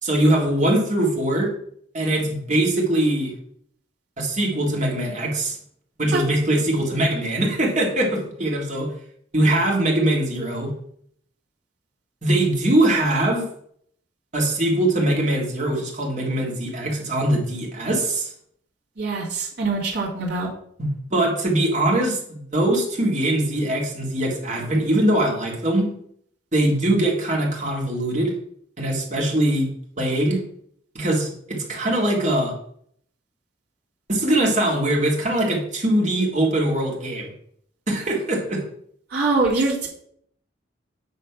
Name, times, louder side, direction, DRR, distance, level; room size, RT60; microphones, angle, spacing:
voice 1, 0.0-1.5 1.9-3.3 4.2-5.6 6.0-8.9 9.3-10.7 12.2-13.4 14.3-18.3 20.8-25.9 26.5-28.3 28.8-29.7 30.0-30.4 30.9-32.5 34.1-37.3 37.9-38.6, right 1 dB, 40° right, -1 dB, 1.9 m, -22 dB
voice 2, 19.0-20.5 39.1-39.9, right 3 dB, 60° right, -6 dB, 2.2 m, -23 dB
8.5 x 3.2 x 5.7 m, 0.66 s
head